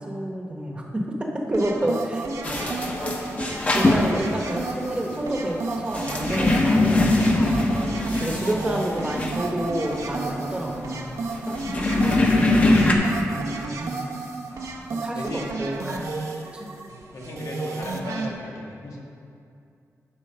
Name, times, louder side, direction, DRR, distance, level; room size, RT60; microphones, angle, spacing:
voice 1, 0.0-2.3 2.9-3.0 3.7-7.6 8.2-11.1 11.9-12.8 13.3-14.2 14.9-16.0 16.5-16.7, right 1 dB, 20° right, 0 dB, 1.0 m, -29 dB
sound 1, 1.5-18.3, right 3 dB, 70° right, 0.8 m, -33 dB
sound 2, 2.4-12.9, left 2 dB, 25° left, 0.9 m, -23 dB
voice 2, 14.5-14.8 15.1-15.5 17.1-19.0, left 2 dB, 85° left, -2 dB, 1.6 m, -37 dB
11.0 x 4.5 x 5.6 m, 2.5 s
wide cardioid pair, 160°, 6 cm